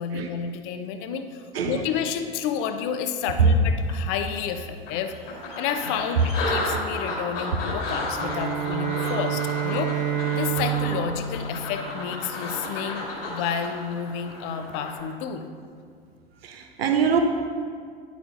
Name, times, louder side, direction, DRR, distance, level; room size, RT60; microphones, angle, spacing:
voice 1, 0.0-5.1 5.6-9.9 10.3-15.5, left 7 dB, 45° left, 8 dB, 0.7 m, -30 dB
sound 1, 4.2-4.3 4.9-15.0, left 2 dB, 65° left, 2.3 m, -33 dB
Bowed string instrument, 8.1-12.5, right 9 dB, 25° right, 0.9 m, -29 dB
voice 2, 16.4-17.2, right 7 dB, 75° right, 4 dB, 0.7 m, -22 dB
10.0 x 8.2 x 2.5 m, 2.1 s
figure-of-eight pair, 85°, 31 cm